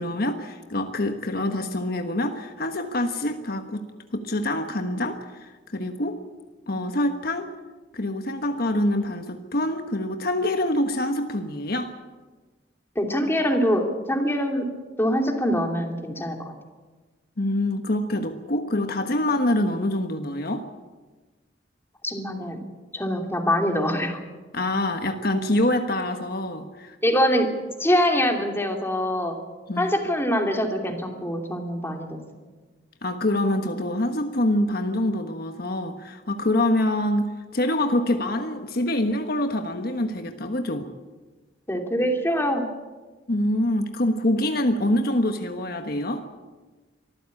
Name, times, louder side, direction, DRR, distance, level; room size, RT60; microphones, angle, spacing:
voice 1, 0.0-3.8 4.1-6.2 6.7-7.5 7.9-11.9 17.4-20.6 24.5-27.0 29.7-29.9 33.0-40.9 43.3-46.3, left 1 dB, 55° left, 6 dB, 1.3 m, -25 dB
voice 2, 12.9-14.7 15.0-16.5 22.0-22.6 22.9-24.2 27.0-27.5 27.8-29.3 29.8-32.2 41.7-42.6, equal, 15° left, 3 dB, 2.9 m, -24 dB
24.0 x 15.0 x 8.5 m, 1.3 s
head